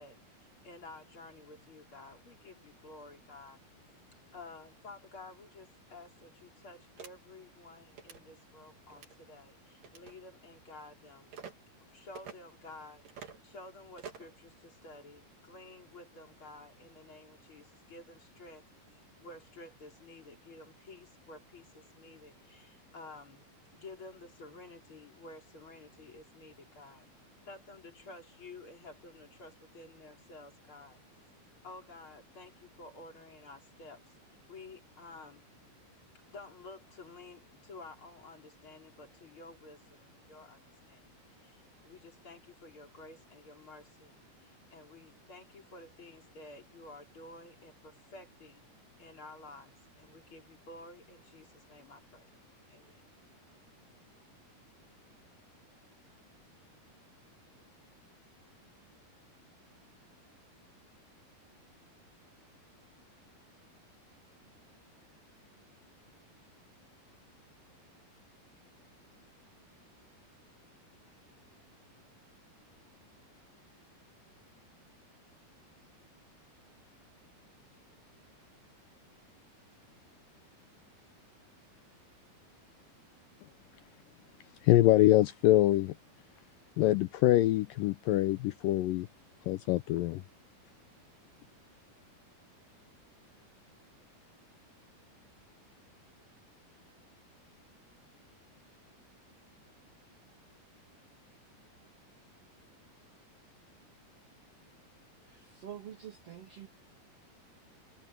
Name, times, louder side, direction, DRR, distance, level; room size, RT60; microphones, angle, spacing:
voice 1, 0.0-3.6 4.1-11.3 11.9-18.6 18.9-23.4 23.7-27.1 27.4-31.0 31.6-35.4 36.3-41.1 41.4-48.6 49.0-52.3 52.7-53.0, left 2 dB, 30° left, 4.4 m, -52 dB
sound 1, 7.0-7.1 7.9-8.2 8.9-9.2 9.8-10.1 11.3-11.5 12.2-12.4 13.1-13.4 14.0-14.3, right 7 dB, 55° right, 4.7 m, -47 dB
voice 2, 84.6-85.9 86.8-89.1 89.5-90.2, left 15 dB, 85° left, 2.0 m, -25 dB
voice 3, 105.3-106.7, right 9 dB, 90° right, 1.3 m, -47 dB
omnidirectional pair, 4.6 m